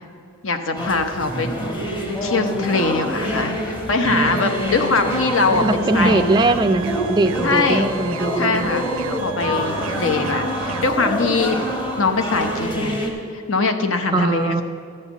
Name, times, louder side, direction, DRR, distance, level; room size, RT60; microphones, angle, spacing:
voice 1, 0.4-1.5 2.2-6.2 7.4-7.9 8.4-8.9 9.1-11.6 12.0-13.0 13.3-14.6, left 3 dB, 65° left, 7 dB, 0.8 m, -22 dB
sound 1, 0.8-13.1, equal, 25° left, 1.3 m, -26 dB
sound 2, 4.0-10.9, right 5 dB, 85° right, 0.5 m, -32 dB
voice 2, 5.6-8.7 14.1-14.6, right 2 dB, 20° right, 7 dB, 0.3 m, -20 dB
12.0 x 5.6 x 8.1 m, 2.4 s
head